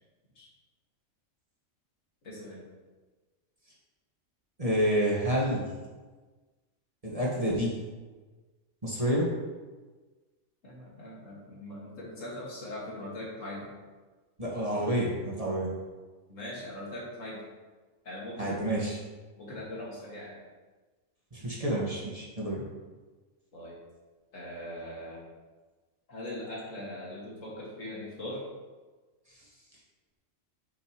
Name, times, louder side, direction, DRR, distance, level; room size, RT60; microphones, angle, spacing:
voice 1, 2.2-2.6 10.6-13.7 16.3-17.4 18.0-18.6 19.4-20.4 23.5-23.8 24.3-25.2 26.1-28.4, left 1 dB, 75° left, -5 dB, 2.5 m, -40 dB
voice 2, 4.6-5.7 7.0-7.7 8.8-9.3 14.4-15.7 18.4-19.0 21.3-22.6, equal, 25° right, -5 dB, 1.6 m, -28 dB
8.3 x 6.9 x 3.1 m, 1.3 s
omnidirectional pair, 1.4 m